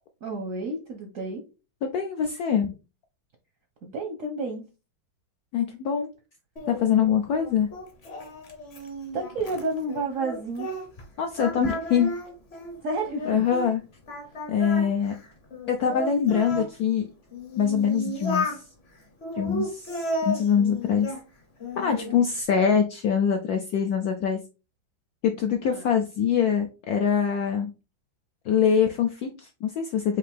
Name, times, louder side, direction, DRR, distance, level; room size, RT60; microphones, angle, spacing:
voice 1, 0.2-1.4 3.8-4.6 9.1-10.7 12.8-13.4 22.0-22.2 25.7-25.9, right 2 dB, 65° right, 3 dB, 0.8 m, -31 dB
voice 2, 1.9-2.7 5.5-6.1 6.7-7.7 11.2-12.1 13.3-13.8 14.5-15.2 15.7-17.1 17.6-18.6 19.4-19.9 20.2-21.1 21.8-24.4 25.2-27.7 28.5-30.2, left 7 dB, 75° left, 4 dB, 0.8 m, -24 dB
Singing, 6.6-11.1 11.4-13.7 14.1-16.7 17.3-18.6 19.2-21.2 21.6-22.2, left 1 dB, 45° left, 0.9 m, -33 dB
4.9 x 2.7 x 3.4 m, 0.30 s
omnidirectional pair, 2.2 m